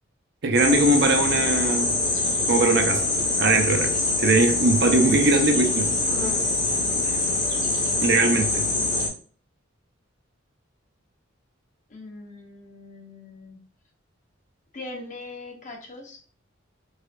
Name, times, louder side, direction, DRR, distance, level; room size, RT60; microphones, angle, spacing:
voice 1, 0.4-2.0 2.5-3.1 3.4-6.0 8.0-8.7, right 2 dB, 60° right, 0.6 m, -21 dB
sound 1, 0.5-9.1, left 2 dB, 85° left, 1.5 m, -24 dB
voice 2, 11.9-13.6 14.7-16.2, left 2 dB, 40° left, 0.8 m, -41 dB
4.8 x 2.4 x 2.5 m
head